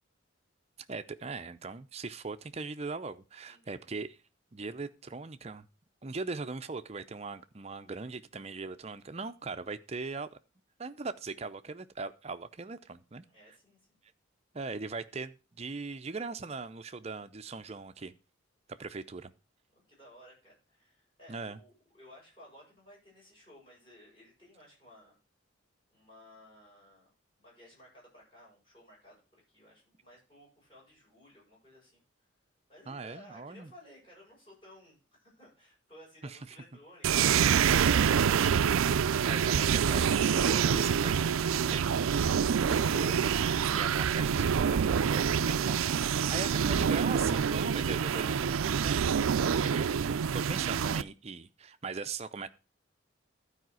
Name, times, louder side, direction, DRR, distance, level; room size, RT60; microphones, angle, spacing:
voice 1, 0.9-4.2 4.5-5.7 6.0-10.4 10.8-13.3 14.5-18.1 18.7-19.3 21.3-21.6 32.9-33.7 36.2-36.6 39.2-41.9 42.3-52.5, right 4 dB, 30° right, 11 dB, 0.6 m, -40 dB
voice 2, 3.4-3.8 13.3-13.8 19.9-25.2 25.9-27.1 27.4-29.2 29.5-32.0 32.7-38.2 39.4-39.7, left 1 dB, 25° left, -4 dB, 7.1 m, -57 dB
sound 1, 37.0-51.0, right 7 dB, 90° right, 0.4 m, -26 dB
12.0 x 5.0 x 6.1 m, 0.31 s
head